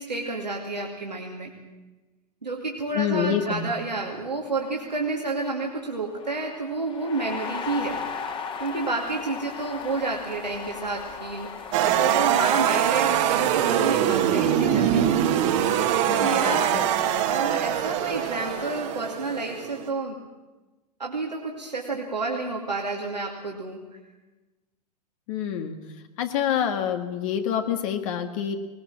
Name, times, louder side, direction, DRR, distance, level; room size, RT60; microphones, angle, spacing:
voice 1, 0.0-1.5 2.4-8.0 8.6-15.0 16.1-16.7 17.1-20.2 21.0-23.8, right 3 dB, 85° right, -1 dB, 2.5 m, -30 dB
voice 2, 3.0-3.7 16.1-16.8 25.3-25.7 26.2-28.6, left 9 dB, 50° left, 6 dB, 1.8 m, -27 dB
sound 1, 4.2-4.3 4.5-18.8, left 5 dB, 25° left, 2.1 m, -38 dB
sound 2, 11.7-19.9, right 10 dB, 50° right, 1.8 m, -23 dB
19.5 x 19.5 x 7.5 m, 1.1 s
figure-of-eight pair, 95°, 21 cm